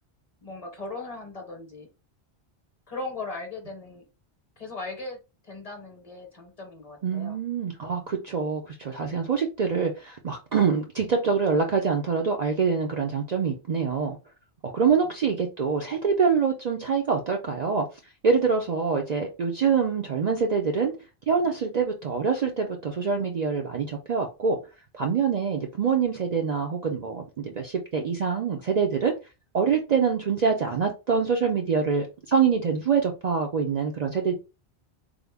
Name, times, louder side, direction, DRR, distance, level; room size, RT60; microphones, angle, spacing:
voice 1, 0.4-1.9 2.9-4.0 4.6-5.2 5.4-7.4, left 3 dB, 40° left, 0.8 m, -38 dB
voice 2, 7.0-14.2 14.6-17.9 18.2-20.9 21.3-24.6 24.9-29.1 29.5-34.3, right 6 dB, 50° right, 0.5 m, -25 dB
3.5 x 2.0 x 3.4 m
omnidirectional pair, 1.1 m